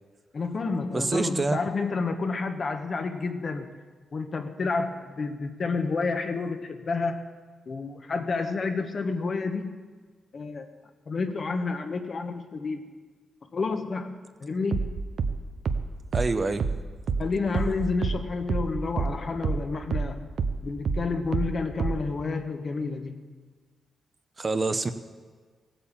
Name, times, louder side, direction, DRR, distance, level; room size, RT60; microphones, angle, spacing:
voice 1, 0.3-3.7 4.1-7.2 7.7-9.8 10.3-10.7 11.1-12.9 13.5-14.9 17.2-20.3 20.6-23.2, left 4 dB, 50° left, 6 dB, 1.3 m, -30 dB
voice 2, 0.9-1.6 16.1-16.7 24.4-24.9, right 3 dB, 35° right, 9 dB, 0.8 m, -26 dB
sound 1, 14.7-19.7 19.9-22.2, right 5 dB, 65° right, 0.8 m, -28 dB
16.0 x 8.8 x 7.3 m, 1.5 s
cardioid pair, 80°, 0 cm